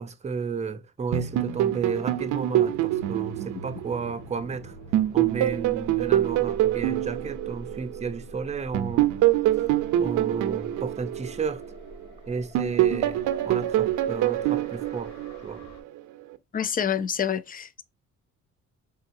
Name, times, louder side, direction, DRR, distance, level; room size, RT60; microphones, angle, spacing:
voice 1, 0.0-4.8 5.1-9.1 10.0-11.6 12.3-15.1 15.4-15.7, right 5 dB, 20° right, 0.5 m, -33 dB
sound 1, 1.1-4.5 4.9-8.2 8.7-12.1 12.5-15.8, right 13 dB, 85° right, 0.6 m, -25 dB
sound 2, 2.0-15.8, left 1 dB, 65° left, 1.3 m, -46 dB
voice 2, 16.5-17.8, left 8 dB, 30° left, 0.4 m, -27 dB
3.9 x 3.7 x 2.6 m
cardioid pair, 90°, 30 cm